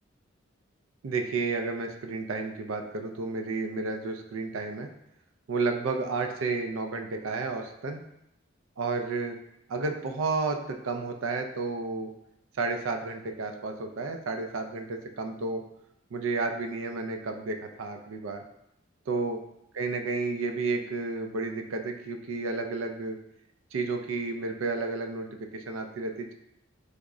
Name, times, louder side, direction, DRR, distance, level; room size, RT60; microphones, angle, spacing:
voice 1, 1.0-4.9 5.5-8.0 8.8-9.4 9.7-12.1 12.6-15.6 16.1-18.4 19.1-19.4 19.7-23.2 23.7-26.3, right 3 dB, 90° right, 5 dB, 0.4 m, -31 dB
3.5 x 2.0 x 3.6 m, 0.80 s
head